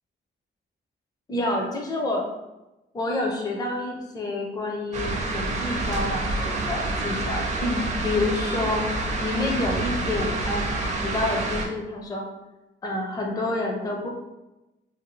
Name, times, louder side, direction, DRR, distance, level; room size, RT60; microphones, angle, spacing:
voice 1, 1.3-2.3 2.9-8.8 9.2-10.6 11.0-12.3 12.8-14.1, left 2 dB, 20° left, 0 dB, 0.4 m, -28 dB
sound 1, 4.9-11.7, right 2 dB, 40° right, 0.5 m, -28 dB
2.6 x 2.6 x 3.0 m, 0.99 s
wide cardioid pair, 135°, 19 cm